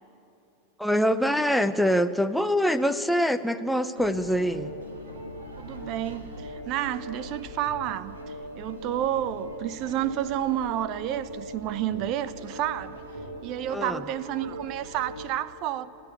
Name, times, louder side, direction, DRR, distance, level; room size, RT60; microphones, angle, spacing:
voice 1, 0.8-4.7 13.7-14.0, equal, ahead, 0.7 m, -24 dB
sound 1, 4.0-15.3, equal, 70° right, 3.5 m, -40 dB
voice 2, 5.6-8.2 8.6-13.0 13.4-15.9, right 11 dB, 40° right, 0.7 m, -30 dB
30.0 x 11.0 x 9.0 m
figure-of-eight pair, 90°, 0 cm